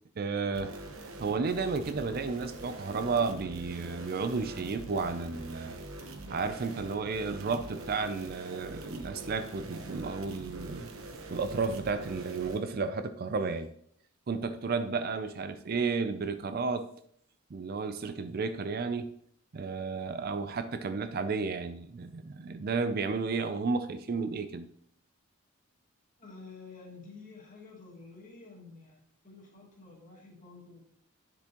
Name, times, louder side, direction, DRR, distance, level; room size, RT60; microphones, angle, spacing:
voice 1, 0.2-0.7 1.2-5.8 6.3-10.9 11.3-13.7 14.3-16.9 17.5-19.1 19.5-24.7, right 4 dB, 45° right, 0.4 m, -32 dB
sound 1, 0.5-12.6, right 2 dB, 70° right, 1.1 m, -44 dB
voice 2, 26.2-30.9, left 4 dB, 40° left, 2.1 m, -50 dB
9.8 x 6.9 x 2.9 m
head